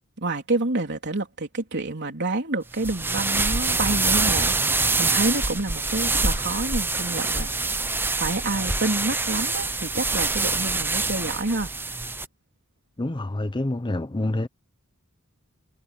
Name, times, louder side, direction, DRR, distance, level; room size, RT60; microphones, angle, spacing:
voice 1, 0.2-7.5 8.2-11.7, right 2 dB, 55° right, 3.6 m, -28 dB
sound 1, 2.7-12.3, right 3 dB, 10° right, 0.8 m, -25 dB
voice 2, 13.0-14.5, left 2 dB, 20° left, 0.7 m, -27 dB
head